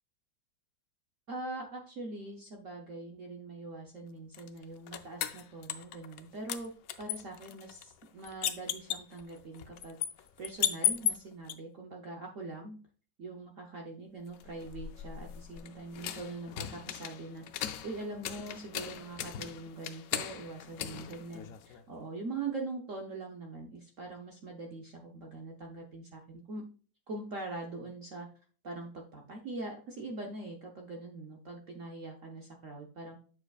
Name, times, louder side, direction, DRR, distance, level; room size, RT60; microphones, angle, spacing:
voice 1, 1.3-6.7 7.0-10.0 10.4-12.8 13.2-26.6 27.1-28.3 28.6-33.2, right 3 dB, 55° right, 1 dB, 1.0 m, -42 dB
sound 1, 4.3-6.2 6.5-11.5 14.3-21.8, left 10 dB, 75° left, 0.8 m, -37 dB
7.9 x 6.7 x 2.4 m, 0.40 s
omnidirectional pair, 2.0 m